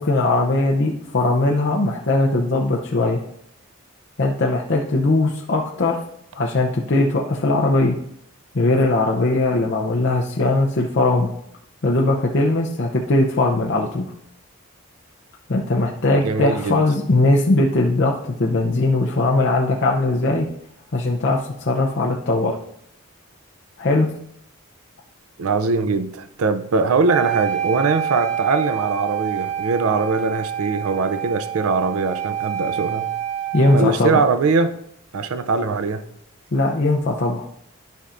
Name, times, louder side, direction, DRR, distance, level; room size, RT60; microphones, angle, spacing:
voice 1, 0.0-3.2 4.2-6.0 6.3-8.0 8.5-11.3 11.8-14.1 15.5-20.5 20.9-22.5 23.8-24.1 33.5-34.2 36.5-37.4, left 2 dB, 50° left, -1 dB, 0.6 m, -19 dB
voice 2, 16.1-16.8 25.4-33.1 33.7-34.8 35.1-36.0, right 4 dB, 80° right, 11 dB, 0.5 m, -21 dB
Wind instrument woodwind instrument, 27.1-34.0, right 9 dB, 30° right, 1.4 m, -27 dB
11.5 x 5.6 x 2.5 m, 0.72 s
head